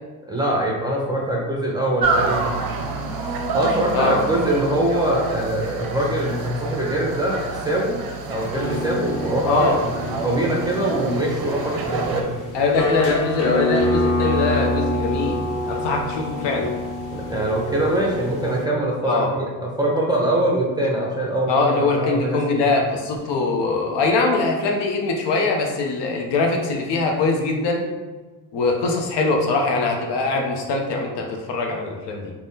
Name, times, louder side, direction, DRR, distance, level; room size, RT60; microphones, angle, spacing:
voice 1, 0.3-2.6 3.5-8.0 8.3-12.3 17.1-22.6, right 1 dB, 10° right, -3 dB, 0.6 m, -23 dB
sound 1, 2.0-12.2, right 3 dB, 50° right, 0.6 m, -28 dB
sound 2, 8.5-18.6, left 1 dB, 40° left, 1.0 m, -27 dB
voice 2, 9.4-9.8 12.5-16.7 19.0-19.3 21.5-27.8 28.5-32.3, left 3 dB, 55° left, 2 dB, 0.6 m, -22 dB
3.3 x 2.2 x 2.7 m, 1.3 s
hypercardioid pair, 60°, 49 cm